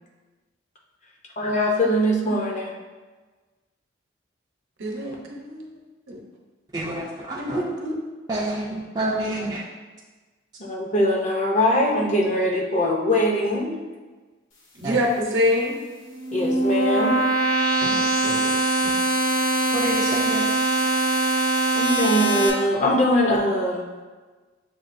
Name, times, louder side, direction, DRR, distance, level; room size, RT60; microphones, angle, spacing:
voice 1, 1.4-2.7 10.6-13.8 16.3-17.2 21.8-23.9, left 1 dB, 35° left, 0 dB, 0.6 m, -22 dB
voice 2, 4.8-5.7 6.1-6.2 7.4-8.0 14.8-15.7 17.8-18.5, left 1 dB, 70° right, -1 dB, 0.8 m, -25 dB
voice 3, 6.7-7.6 8.3-9.6 14.8-15.0 19.7-20.5, right 2 dB, 20° right, -5 dB, 0.4 m, -28 dB
sound 1, 16.0-22.5, right 2 dB, 75° left, 0.9 m, -22 dB
6.8 x 2.3 x 2.5 m, 1.3 s
head